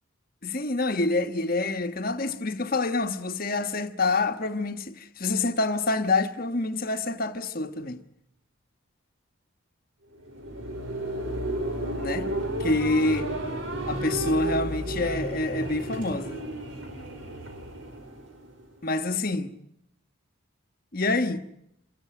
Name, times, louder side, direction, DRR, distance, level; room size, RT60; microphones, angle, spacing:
voice 1, 0.4-8.0 12.0-12.3 12.6-13.3 13.8-16.4 18.8-19.6 20.9-21.5, left 2 dB, 45° left, 1.2 m, -27 dB
sound 1, 10.1-18.8, right 1 dB, 65° right, 5.3 m, -32 dB
27.0 x 13.5 x 9.3 m
head